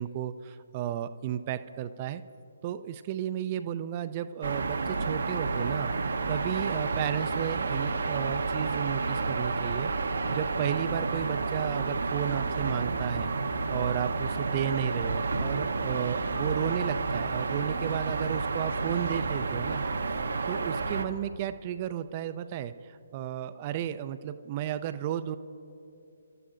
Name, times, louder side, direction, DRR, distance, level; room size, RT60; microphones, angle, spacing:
voice 1, 0.0-2.2 2.6-5.9 6.3-9.9 10.3-13.3 13.7-19.8 20.5-25.4, right 10 dB, 30° right, 11 dB, 0.5 m, -33 dB
sound 1, 4.4-21.0, right 3 dB, 65° right, 0.9 m, -30 dB
27.0 x 13.0 x 2.5 m, 2.8 s
figure-of-eight pair, 140°, 0 cm